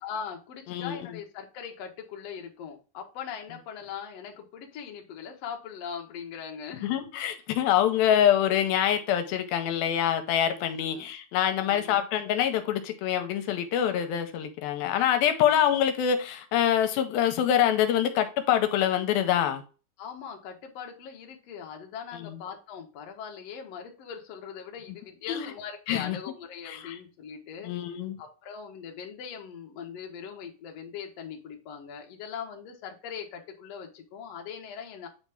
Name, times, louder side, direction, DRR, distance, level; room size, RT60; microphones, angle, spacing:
voice 1, 0.0-7.0 10.9-11.1 11.7-12.0 20.0-27.7 28.2-35.1, left 7 dB, 60° left, 1.9 m, -40 dB
voice 2, 6.8-19.6 22.2-22.4 25.3-25.5 25.9-26.2 26.7-27.0 27.6-28.2, left 10 dB, 85° left, 2.6 m, -25 dB
8.8 x 4.2 x 3.5 m
omnidirectional pair, 4.3 m